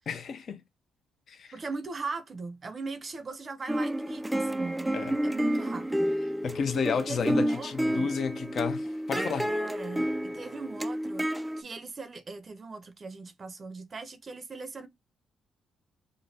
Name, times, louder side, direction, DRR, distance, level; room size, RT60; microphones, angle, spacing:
voice 1, 0.1-0.6 1.3-1.5 4.9-5.1 6.4-9.5, left 6 dB, 55° left, 0.7 m, -31 dB
voice 2, 1.5-6.1 6.9-8.1 9.1-14.9, right 3 dB, 35° right, 0.6 m, -39 dB
sound 1, 3.7-11.6, equal, 10° right, 0.3 m, -30 dB
5.1 x 2.1 x 2.7 m
cardioid pair, 90°, 0 cm